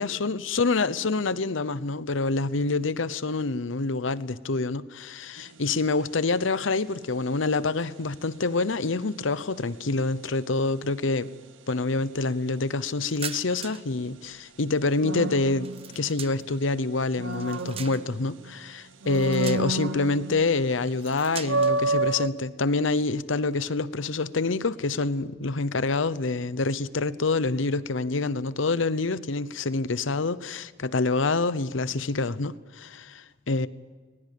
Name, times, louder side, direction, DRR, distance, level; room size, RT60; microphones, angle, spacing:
voice 1, 0.0-11.3 11.7-15.7 16.0-33.7, left 3 dB, 85° left, 0.9 m, -27 dB
sound 1, 5.4-5.7 15.0-16.4 16.9-18.5 19.0-20.6 20.9-21.0 21.4-22.3, right 3 dB, 80° right, 1.0 m, -29 dB
sound 2, 13.0-13.9 14.2-16.6 17.1-18.3 19.0-20.0 20.8-21.8, right 8 dB, 30° right, 0.8 m, -41 dB
21.5 x 20.0 x 8.5 m
head